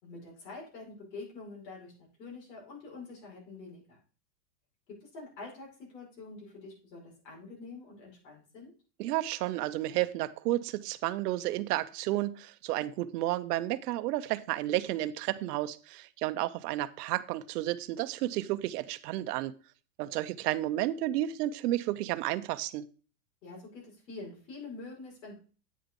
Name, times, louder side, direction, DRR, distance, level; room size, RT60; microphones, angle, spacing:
voice 1, 0.0-4.0 4.9-8.7 23.4-25.4, left 3 dB, 80° left, 5.3 m, -46 dB
voice 2, 9.0-19.5 20.0-22.8, right 15 dB, 70° right, 0.7 m, -32 dB
8.6 x 6.7 x 3.7 m
supercardioid pair, 140°, 49 cm